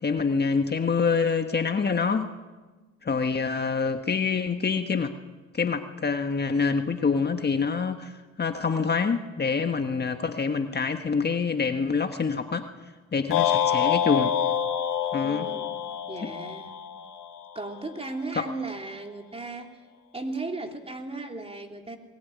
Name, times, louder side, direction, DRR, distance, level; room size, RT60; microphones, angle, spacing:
voice 1, 0.0-2.3 3.0-5.1 5.5-12.6 13.1-14.3 15.1-15.5 16.2-16.3 18.4-18.5, left 5 dB, 35° left, 7 dB, 1.5 m, -26 dB
sound 1, 13.3-17.6, left 9 dB, 85° left, 2.6 m, -27 dB
voice 2, 15.2-15.7 16.1-16.8 17.5-19.7 20.1-22.0, right 2 dB, 20° right, 4 dB, 3.3 m, -36 dB
21.0 x 20.5 x 9.5 m, 1.3 s
cardioid pair, 90°, 30 cm